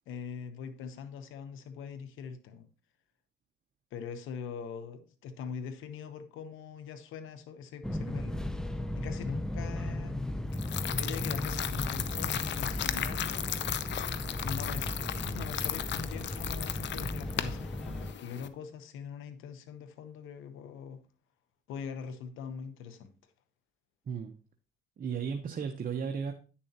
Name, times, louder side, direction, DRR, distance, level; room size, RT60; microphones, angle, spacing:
voice 1, 0.1-2.7 3.9-8.4 8.9-10.2 10.9-13.5 14.4-21.0 21.7-23.1, left 7 dB, 85° left, 0.9 m, -42 dB
Fixed-wing aircraft airplane, 7.8-18.1, left 1 dB, 5° left, 0.6 m, -36 dB
sound 1, 10.5-18.5, left 10 dB, 65° left, 0.7 m, -36 dB
voice 2, 24.1-24.4 25.0-26.3, right 6 dB, 45° right, 0.8 m, -34 dB
9.4 x 7.0 x 2.9 m
cardioid pair, 90°, 20 cm